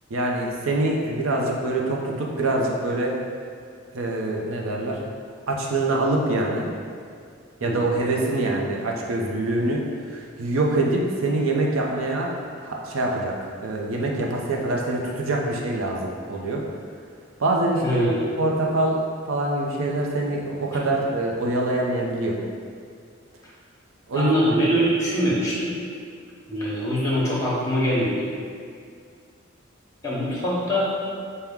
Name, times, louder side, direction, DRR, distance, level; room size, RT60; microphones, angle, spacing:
voice 1, 0.1-3.2 3.9-5.0 5.5-6.7 7.6-12.4 12.6-16.7 17.4-18.1 18.4-22.4 24.1-24.6, right 2 dB, 85° right, -1 dB, 0.6 m, -25 dB
voice 2, 17.8-18.2 24.1-25.7 26.5-28.3 30.0-30.9, equal, 15° left, -6 dB, 0.8 m, -23 dB
5.8 x 2.2 x 3.6 m, 2.2 s
head